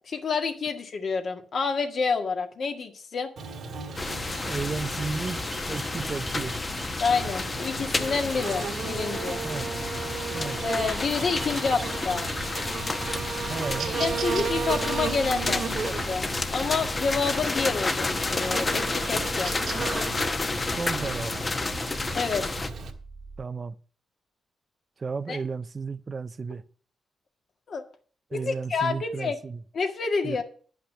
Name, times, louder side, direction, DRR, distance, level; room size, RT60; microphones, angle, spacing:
voice 1, 0.1-3.3 7.0-9.4 10.6-12.3 13.8-19.5 22.1-22.4 25.3-25.4 27.7-27.8 28.3-29.4 29.7-30.4, left 5 dB, 60° left, 1.9 m, -28 dB
Buzz, 3.4-22.9, right 5 dB, 70° right, 1.8 m, -35 dB
sound 1, 4.0-22.7, left 3 dB, 30° left, 1.0 m, -31 dB
voice 2, 4.4-6.6 9.4-9.8 10.3-10.7 13.4-14.0 20.8-21.5 23.4-23.7 25.0-26.6 28.3-29.6 30.2-30.4, right 4 dB, 40° right, 0.5 m, -33 dB
sound 2, 17.7-23.5, right 3 dB, 25° right, 1.3 m, -44 dB
10.0 x 5.8 x 7.4 m
cardioid pair, 70°, 0 cm